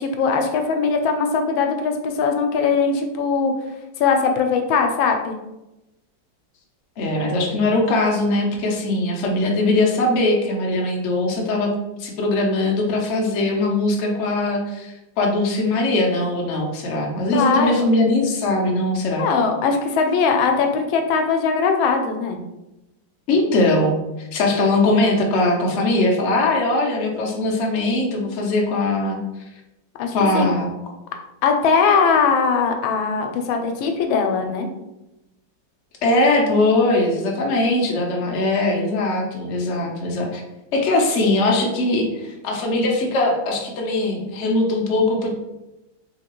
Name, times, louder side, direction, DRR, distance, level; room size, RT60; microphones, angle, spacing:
voice 1, 0.0-3.5 4.0-5.4 17.3-17.9 19.2-22.4 30.0-30.5 31.4-34.7, left 5 dB, 90° left, 5 dB, 1.3 m, -20 dB
voice 2, 7.0-11.7 12.0-19.3 23.3-29.2 30.1-30.7 36.0-40.4 40.7-45.3, left 2 dB, 70° left, 0 dB, 0.6 m, -20 dB
3.6 x 2.8 x 2.9 m, 0.97 s
omnidirectional pair, 2.1 m